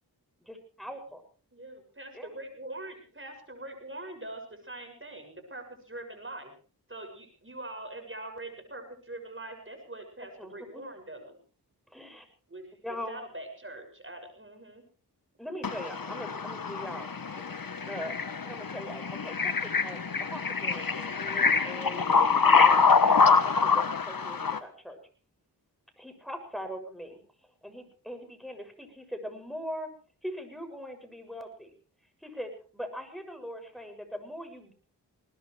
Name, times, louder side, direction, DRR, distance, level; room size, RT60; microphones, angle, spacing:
voice 1, 0.5-1.2 2.1-2.3 10.4-10.8 11.9-12.2 12.8-13.2 15.4-17.1 17.3-17.4 17.9-18.2 18.4-20.0 20.3-22.1 22.6-25.0 26.0-27.2 27.6-29.9 30.2-31.7 32.2-34.7, equal, ahead, 7.0 m, -41 dB
voice 2, 1.5-6.6 6.9-11.4 12.5-12.7 13.1-14.9, right 2 dB, 30° right, 6.9 m, -43 dB
voice 3, 15.6-24.6, left 5 dB, 55° left, 1.3 m, -25 dB
21.5 x 20.0 x 3.4 m
cardioid pair, 50°, 40 cm